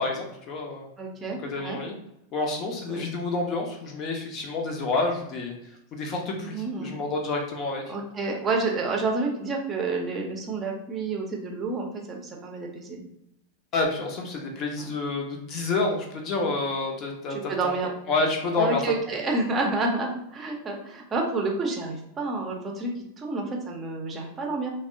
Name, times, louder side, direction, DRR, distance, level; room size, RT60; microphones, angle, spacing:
voice 1, 0.0-0.9 1.4-2.0 2.3-5.5 5.9-7.8 13.7-17.7 18.1-18.8 19.1-19.2, left 3 dB, 35° left, 2 dB, 0.6 m, -28 dB
voice 2, 1.0-1.8 2.9-3.0 6.5-7.0 7.9-13.0 14.8-14.9 17.3-17.9 18.6-24.7, right 3 dB, 20° right, 0 dB, 0.6 m, -29 dB
3.4 x 2.0 x 2.5 m, 0.81 s
figure-of-eight pair, 90°, 0 cm